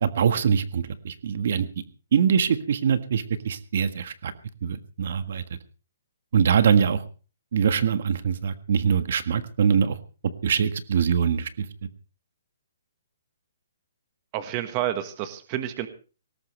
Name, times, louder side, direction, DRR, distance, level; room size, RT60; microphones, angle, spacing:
voice 1, 0.0-1.7 2.1-4.3 4.6-5.4 6.3-7.0 7.5-10.0 10.4-11.7, right 7 dB, 50° right, 12 dB, 1.6 m, -23 dB
voice 2, 14.3-15.9, right 12 dB, 20° right, 10 dB, 1.5 m, -29 dB
20.0 x 18.5 x 3.3 m, 0.36 s
hypercardioid pair, 175°, 0 cm